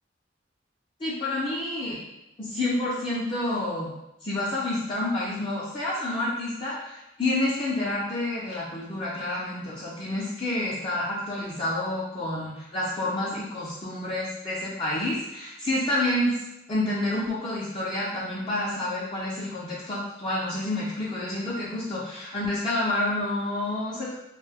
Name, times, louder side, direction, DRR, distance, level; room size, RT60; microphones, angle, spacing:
voice 1, 1.0-2.0 2.4-3.9 4.2-16.4 16.7-24.1, left 1 dB, 30° left, -9 dB, 0.5 m, -29 dB
2.6 x 2.2 x 3.4 m, 0.90 s
head